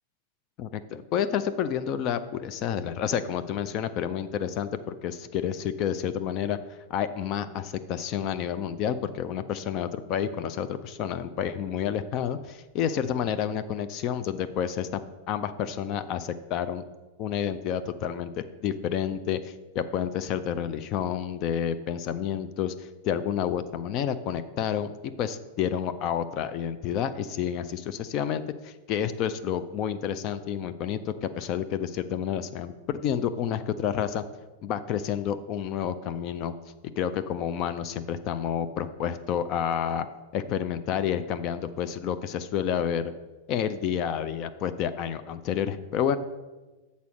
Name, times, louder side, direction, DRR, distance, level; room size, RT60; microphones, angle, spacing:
voice 1, 0.6-15.0 15.3-16.8 17.2-24.9 25.2-34.2 34.6-36.5 37.0-40.1 40.3-43.1 43.5-46.2, left 9 dB, 40° left, 11 dB, 0.4 m, -29 dB
8.2 x 4.1 x 6.2 m, 1.2 s
figure-of-eight pair, 90°, 0 cm